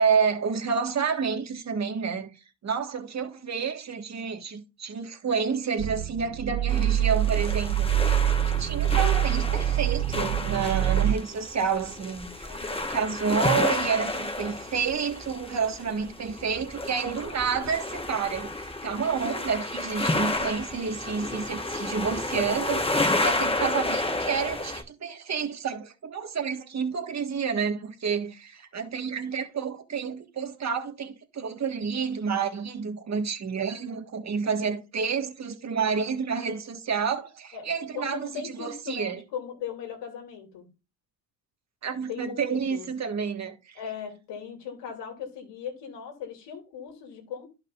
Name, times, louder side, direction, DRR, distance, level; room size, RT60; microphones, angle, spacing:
voice 1, 0.0-2.3 2.6-39.2 41.8-43.8, right 6 dB, 40° right, 1.7 m, -29 dB
sound 1, 5.8-11.2, right 12 dB, 60° right, 0.5 m, -25 dB
sound 2, 6.7-24.8, left 2 dB, 15° left, 1.3 m, -31 dB
voice 2, 12.4-12.9 34.4-34.8 37.5-37.7 37.9-40.7 42.1-42.9 43.7-47.5, left 7 dB, 75° left, 2.8 m, -38 dB
11.5 x 5.5 x 2.5 m
cardioid pair, 90°, 43 cm